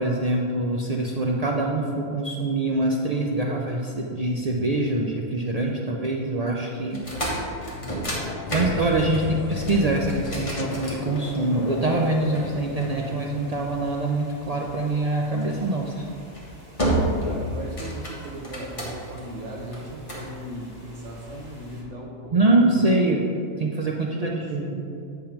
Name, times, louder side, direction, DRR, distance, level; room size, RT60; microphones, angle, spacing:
voice 1, 0.0-7.0 8.5-16.0 22.3-23.2 23.6-24.8, right 2 dB, 90° right, 0 dB, 0.3 m, -24 dB
sound 1, 6.9-11.6 12.3-13.6 15.4-15.7 16.2-16.4 16.8-17.3 17.6-19.2 19.7-20.3, right 1 dB, 25° left, 1.4 m, -30 dB
voice 2, 7.7-8.2 17.2-22.4 22.8-23.2 24.0-25.1, right 1 dB, 70° right, -3 dB, 1.1 m, -37 dB
sound 2, 8.0-14.0, left 4 dB, 65° left, 0.5 m, -35 dB
sound 3, 9.2-21.8, equal, 30° right, 1.7 m, -48 dB
8.6 x 3.6 x 5.8 m, 2.5 s
omnidirectional pair, 1.4 m